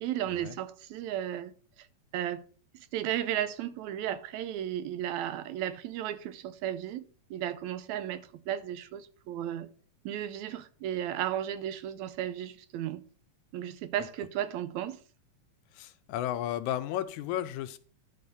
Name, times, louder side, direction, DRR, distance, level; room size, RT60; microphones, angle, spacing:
voice 1, 0.0-1.5 2.1-2.4 2.7-9.7 10.1-13.0 13.5-15.0, right 11 dB, 80° right, 1.9 m, -34 dB
voice 2, 15.7-17.8, left 12 dB, 80° left, 2.1 m, -33 dB
11.5 x 3.9 x 6.9 m
omnidirectional pair, 3.4 m